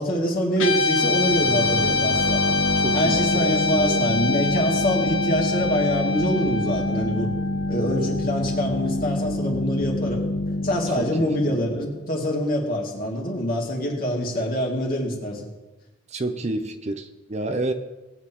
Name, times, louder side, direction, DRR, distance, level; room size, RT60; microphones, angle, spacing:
voice 1, 0.0-2.6 2.9-7.3 7.7-10.2 10.6-15.5, equal, 50° left, -2 dB, 2.6 m, -25 dB
Guitar, 0.6-9.0, left 3 dB, 90° left, 1.7 m, -26 dB
sound 1, 1.0-12.4, left 2 dB, 70° left, 0.7 m, -27 dB
voice 2, 2.8-4.1 11.0-11.5 16.1-17.7, right 2 dB, 35° right, 8 dB, 0.7 m, -29 dB
19.0 x 9.2 x 3.0 m, 1.1 s
head